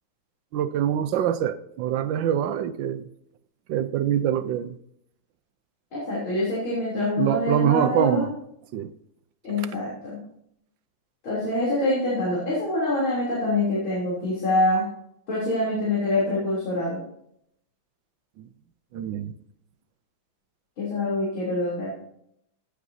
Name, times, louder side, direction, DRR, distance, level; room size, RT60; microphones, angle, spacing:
voice 1, 0.5-3.0 3.7-4.8 7.2-8.3 8.7-8.9 9.6-9.7 18.4-18.5 18.9-19.3, right 10 dB, 75° right, 1.3 m, -24 dB
voice 2, 5.9-8.3 9.4-10.2 11.2-14.9 15.3-17.0 20.8-21.9, left 1 dB, 90° left, 4.2 m, -25 dB
16.5 x 8.4 x 2.7 m
omnidirectional pair, 2.2 m